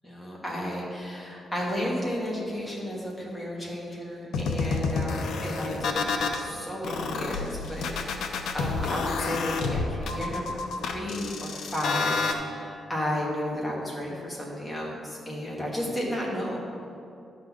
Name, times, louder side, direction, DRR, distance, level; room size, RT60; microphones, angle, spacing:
voice 1, 0.0-16.6, equal, 10° left, -4 dB, 2.1 m, -33 dB
sound 1, 4.3-6.4 6.8-12.3, left 4 dB, 85° left, 0.8 m, -29 dB
11.5 x 4.2 x 7.6 m, 2.6 s
cardioid pair, 130°, 0 cm